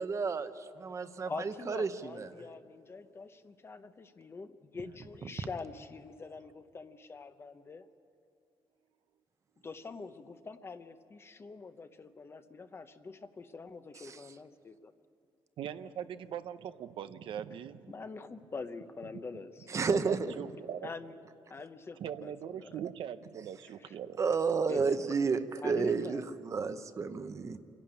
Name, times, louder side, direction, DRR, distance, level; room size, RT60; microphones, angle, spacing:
voice 1, 0.0-2.3 14.0-14.2 19.7-20.3 24.2-27.6, right 5 dB, 35° right, 11 dB, 0.9 m, -31 dB
voice 2, 1.3-7.9 9.6-14.9 17.9-19.7 20.8-21.2 21.5-22.8 23.8-24.0 24.7-25.2 25.6-26.2, left 4 dB, 25° left, 10 dB, 0.8 m, -45 dB
voice 3, 15.6-17.8 19.9-20.9 22.0-24.2 24.7-24.8, right 9 dB, 70° right, 11 dB, 0.6 m, -41 dB
26.5 x 11.5 x 8.8 m, 2.6 s
cardioid pair, 140°, 9 cm